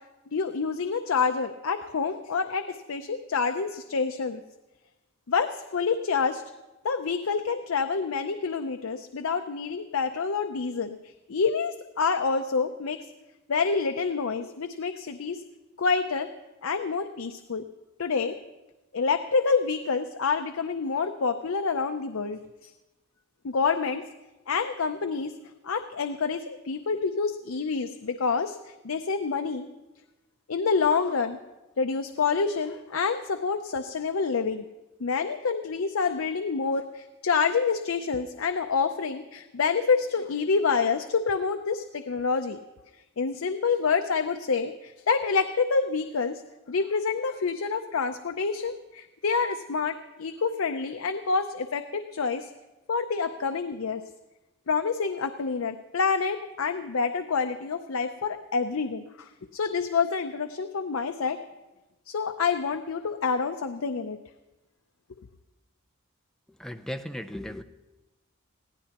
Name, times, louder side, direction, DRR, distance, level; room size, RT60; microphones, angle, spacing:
voice 1, 0.3-4.4 5.3-6.4 6.8-13.0 13.5-15.4 15.8-16.3 16.6-17.6 18.0-18.3 18.9-22.7 23.4-24.0 24.5-25.3 25.6-29.7 30.5-31.4 31.8-34.6 35.0-42.6 43.2-46.4 46.7-52.5 52.9-54.0 54.7-61.4 62.1-64.2, left 5 dB, 70° left, 7 dB, 0.6 m, -27 dB
voice 2, 66.6-67.6, equal, ahead, 8 dB, 0.5 m, -36 dB
21.5 x 16.0 x 2.9 m, 1.1 s
head